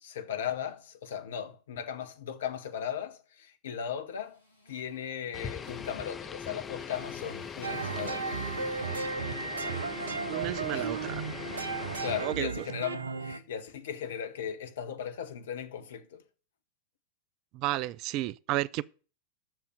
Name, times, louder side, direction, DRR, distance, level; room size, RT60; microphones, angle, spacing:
voice 1, 0.0-4.4 4.7-8.4 10.7-11.0 12.0-16.2, left 8 dB, 60° left, 1.1 m, -37 dB
Motorcycle, 4.1-10.8, left 1 dB, 80° left, 2.1 m, -57 dB
sound 1, 5.3-12.4, left 6 dB, 20° left, 0.7 m, -41 dB
sound 2, 7.6-13.4, right 5 dB, 70° right, 0.7 m, -35 dB
voice 2, 10.3-11.2 12.2-12.5 17.5-18.8, right 16 dB, 40° right, 0.4 m, -32 dB
7.6 x 6.9 x 7.8 m
figure-of-eight pair, 90°, 0 cm